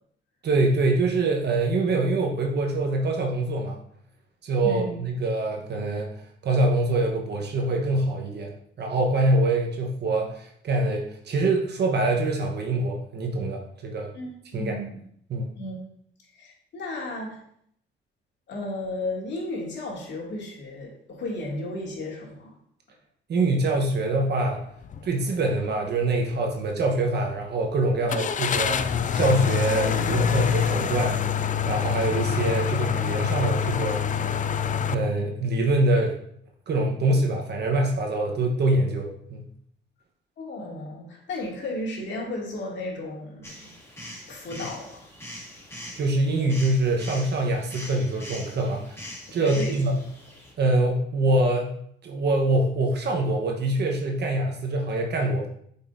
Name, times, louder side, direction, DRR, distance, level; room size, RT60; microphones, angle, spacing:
voice 1, 0.4-3.8 4.4-6.1 6.4-14.1 14.5-14.8 15.3-15.5 23.3-24.6 25.0-31.2 31.7-34.0 34.9-36.2 36.7-39.5 46.0-49.1 49.3-50.0 50.6-51.7 52.0-55.5, right 2 dB, 55° right, 1 dB, 1.2 m, -24 dB
voice 2, 4.6-4.9 14.1-14.9 15.6-15.8 16.3-17.4 18.5-22.5 40.4-43.7 44.3-45.0 49.4-49.8, left 2 dB, 65° left, -2 dB, 2.4 m, -34 dB
sound 1, 24.8-25.1 25.5-25.6 28.1-34.9, left 7 dB, 40° left, 0.4 m, -25 dB
sound 2, 43.4-50.5, equal, 15° left, 2.5 m, -42 dB
8.5 x 5.4 x 2.6 m, 0.67 s
cardioid pair, 90°, 20 cm